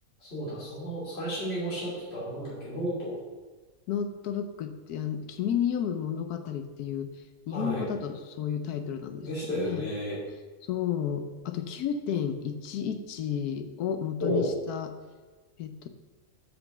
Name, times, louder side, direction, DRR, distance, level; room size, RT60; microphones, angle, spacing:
voice 1, 0.2-3.1 7.5-7.9 9.2-10.2 14.2-14.5, equal, 40° left, -9 dB, 2.9 m, -32 dB
voice 2, 3.9-7.1 7.5-9.3 9.5-9.9 10.7-14.9 15.6-15.9, left 8 dB, 85° left, 8 dB, 1.2 m, -32 dB
6.3 x 5.2 x 6.6 m, 1.3 s
omnidirectional pair, 1.6 m